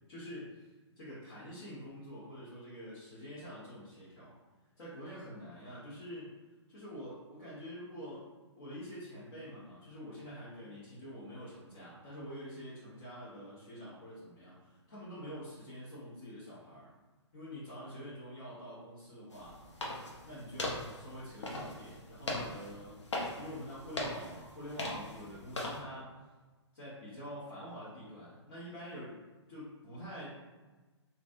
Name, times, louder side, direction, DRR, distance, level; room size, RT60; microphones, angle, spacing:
voice 1, 0.1-0.7 1.0-4.4 4.8-6.3 6.7-8.3 8.6-16.9 17.3-19.6 20.2-23.0 23.4-26.1 26.7-29.2 29.5-30.3, equal, 50° left, -10 dB, 1.2 m, -46 dB
sound 1, 19.3-25.8, left 1 dB, 75° left, 0.7 m, -40 dB
3.1 x 2.5 x 2.6 m, 1.2 s
figure-of-eight pair, 125°, 15 cm